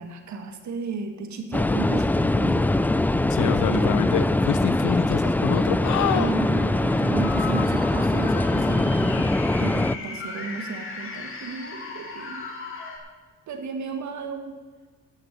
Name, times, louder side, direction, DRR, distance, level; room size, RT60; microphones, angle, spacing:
voice 1, 0.0-2.9 3.7-4.0 6.1-9.3 9.6-12.5 13.5-14.6, right 4 dB, 70° right, 6 dB, 1.9 m, -34 dB
sound 1, 1.5-9.9, left 2 dB, 5° left, 0.4 m, -22 dB
voice 2, 3.3-6.3, left 8 dB, 75° left, 12 dB, 0.9 m, -26 dB
sound 2, 6.1-13.0, left 3 dB, 45° left, 2.7 m, -37 dB
11.0 x 6.6 x 9.3 m, 1.4 s
cardioid pair, 90°, 30 cm